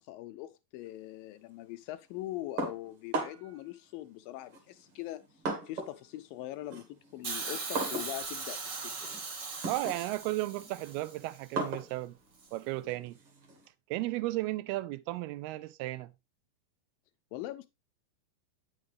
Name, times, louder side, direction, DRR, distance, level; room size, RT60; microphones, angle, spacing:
voice 1, 0.0-5.2 5.7-8.9 17.3-17.7, left 15 dB, 80° left, 2.1 m, -42 dB
sound 1, 2.6-3.6 4.5-6.0 6.4-13.7, right 2 dB, 50° right, 2.0 m, -39 dB
Hiss, 7.2-11.4 12.4-12.5, right 4 dB, 70° right, 1.0 m, -39 dB
voice 2, 9.7-12.1 12.5-13.2 13.9-16.1, right 18 dB, 90° right, 2.6 m, -34 dB
8.9 x 6.6 x 3.2 m
omnidirectional pair, 4.4 m